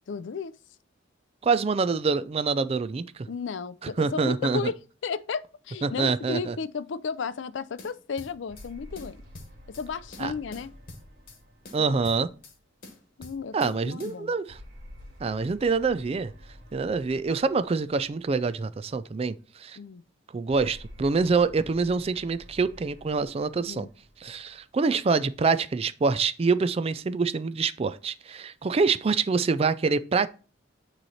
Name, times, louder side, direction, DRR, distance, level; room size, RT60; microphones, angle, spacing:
voice 1, 0.1-0.5 3.3-9.2 9.7-10.7 11.8-12.1 13.2-14.3 19.8-20.0 23.6-23.9, left 5 dB, 70° left, 0.4 m, -34 dB
voice 2, 1.4-3.3 3.8-4.6 5.8-6.6 10.2-10.3 11.7-12.3 13.5-14.6 15.2-16.3 16.7-19.8 20.3-23.9 24.2-30.3, right 4 dB, 30° right, 0.3 m, -26 dB
sound 1, 7.8-8.7 9.0-9.9 10.1-11.4 11.7-12.6 12.8-13.7 14.0-14.2, left 2 dB, 50° left, 1.3 m, -46 dB
sound 2, 8.5-13.1 14.5-18.9 20.5-25.0, equal, 50° right, 1.8 m, -50 dB
9.0 x 3.1 x 4.1 m
head